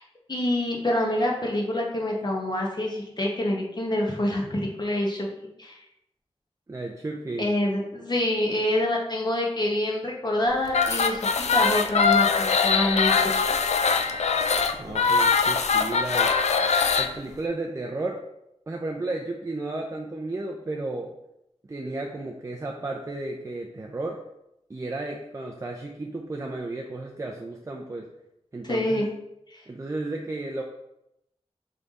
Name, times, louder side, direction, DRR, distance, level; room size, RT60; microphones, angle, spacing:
voice 1, 0.3-5.3 5.6-5.8 7.4-13.4 28.6-29.1 29.5-29.6, left 1 dB, 40° left, -1 dB, 1.0 m, -26 dB
voice 2, 6.7-7.5 14.7-16.3 17.0-18.2 18.7-21.1 21.6-24.2 24.7-28.1 28.5-29.0 29.7-30.6, right 2 dB, 25° right, 1 dB, 0.4 m, -33 dB
sound 1, 10.7-17.1, left 5 dB, 75° left, 0.4 m, -22 dB
3.7 x 3.4 x 4.0 m, 0.83 s
wide cardioid pair, 90°, 12 cm